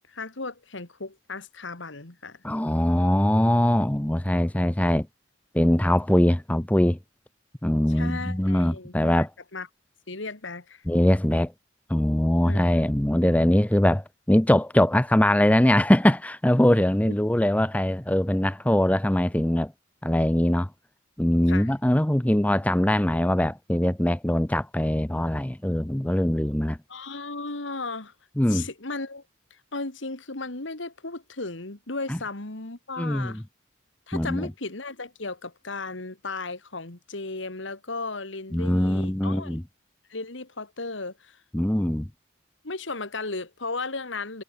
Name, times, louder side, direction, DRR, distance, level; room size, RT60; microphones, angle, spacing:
voice 1, 0.1-2.4 7.9-9.3 9.5-9.7 10.1-10.8 12.4-12.6 17.1-17.2 21.5-21.7 26.9-28.1 28.5-29.2 29.5-33.4 34.1-39.6 40.1-41.4 42.6-44.4, left 3 dB, 70° left, 2.3 m, -35 dB
voice 2, 2.4-5.1 5.5-7.0 7.6-9.3 10.9-11.5 11.9-19.7 20.0-20.7 21.2-26.8 28.4-28.7 32.1-32.2 33.0-33.4 34.1-34.5 38.5-39.6 41.5-42.1, left 1 dB, 5° left, 0.6 m, -22 dB
head